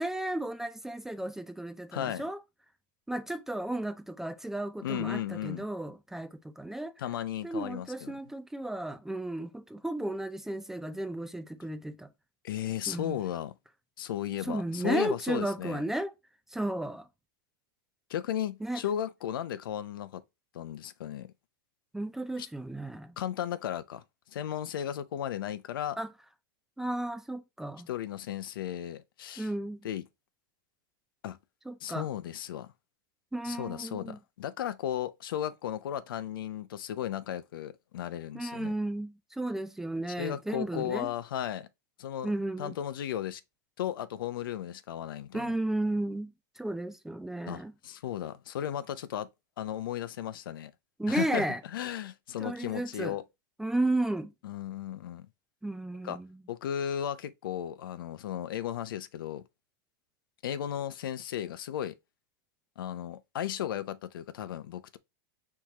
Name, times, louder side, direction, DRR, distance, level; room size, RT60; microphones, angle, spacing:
voice 1, 0.0-2.4 3.1-6.9 7.4-12.1 12.9-13.2 14.4-16.1 16.5-17.1 18.6-18.8 21.9-23.1 26.0-26.1 26.8-27.9 29.4-29.9 31.7-32.1 33.3-34.2 38.3-41.1 42.2-42.7 45.3-47.7 51.0-51.6 52.4-53.1 53.6-54.3 55.6-56.4, right 1 dB, 5° right, 0.3 m, -34 dB
voice 2, 1.9-2.2 4.8-5.6 7.0-8.1 12.4-13.5 14.0-15.8 18.1-20.2 20.5-21.3 22.4-22.5 23.2-24.0 24.3-26.0 27.9-29.5 29.8-30.0 31.2-31.4 31.8-32.7 33.4-38.7 40.2-41.7 42.0-42.3 42.6-43.4 43.8-45.5 47.5-49.3 49.6-50.7 51.1-51.4 51.7-53.2 54.4-55.3 56.0-56.2 56.5-59.4 60.4-61.9 62.8-65.0, left 10 dB, 85° left, 0.6 m, -35 dB
4.6 x 3.6 x 2.9 m
supercardioid pair, 150°, 11 cm